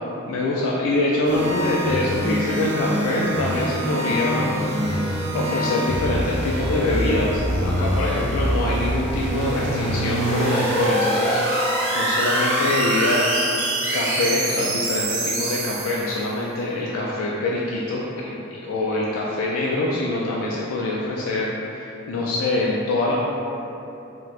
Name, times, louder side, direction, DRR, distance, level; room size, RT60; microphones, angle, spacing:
voice 1, 0.2-4.6 5.3-13.4 13.9-23.2, left 2 dB, 75° left, -4 dB, 0.3 m, -24 dB
sound 1, 1.2-16.2, right 1 dB, 60° right, 0.4 m, -24 dB
4.1 x 2.1 x 2.4 m, 2.9 s
head